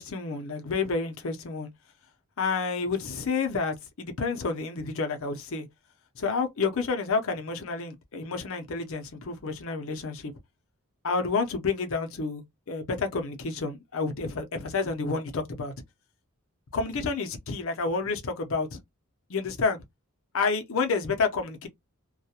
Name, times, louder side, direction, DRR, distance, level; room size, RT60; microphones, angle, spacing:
voice 1, 0.0-1.7 2.4-5.7 6.2-10.3 11.0-15.7 16.7-18.8 19.3-19.8 20.3-21.7, left 4 dB, 65° left, 0.6 m, -29 dB
2.3 x 2.1 x 2.7 m
head